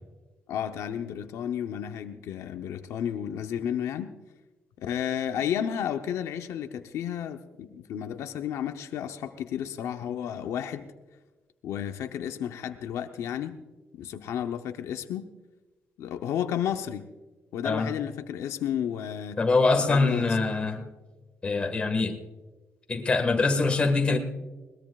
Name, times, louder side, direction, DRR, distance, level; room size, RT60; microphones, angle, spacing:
voice 1, 0.5-4.1 4.8-10.9 11.6-13.6 13.9-15.3 16.0-17.1 17.5-19.4 19.9-20.4, left 9 dB, 80° left, 7 dB, 0.7 m, -32 dB
voice 2, 19.4-20.9 21.4-22.2 22.9-24.2, left 3 dB, 25° left, 4 dB, 1.6 m, -24 dB
21.0 x 19.5 x 2.4 m, 1.2 s
cardioid pair, 165°, 5 cm